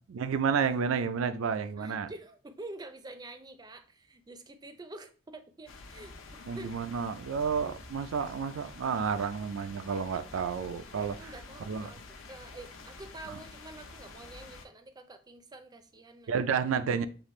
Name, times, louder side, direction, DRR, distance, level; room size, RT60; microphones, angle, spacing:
voice 1, 0.1-2.1 6.5-11.3 11.7-11.9 13.3-13.4 16.3-17.0, right 6 dB, 85° right, 0.4 m, -31 dB
voice 2, 1.8-6.7 11.1-16.3, right 2 dB, 20° right, 0.5 m, -47 dB
sound 1, 5.7-14.6, left 3 dB, 75° left, 0.7 m, -48 dB
6.8 x 2.4 x 3.1 m
head